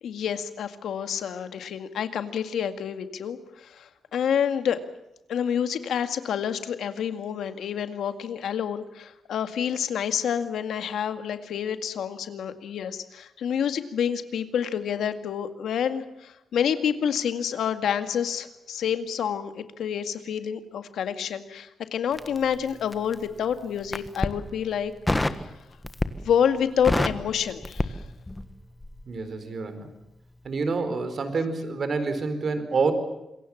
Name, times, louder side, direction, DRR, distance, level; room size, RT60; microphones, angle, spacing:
voice 1, 0.0-4.8 5.3-24.9 26.2-28.0, left 8 dB, 85° left, 9 dB, 2.0 m, -28 dB
Crackle, 22.1-23.3 23.8-24.4 25.1-25.5 25.8-26.3 26.6-28.5 28.8-29.0, left 2 dB, 10° left, 1.4 m, -27 dB
voice 2, 29.1-29.9 30.4-32.9, right 4 dB, 45° right, 10 dB, 4.3 m, -27 dB
27.0 x 23.0 x 7.3 m, 0.92 s
wide cardioid pair, 135°, 0 cm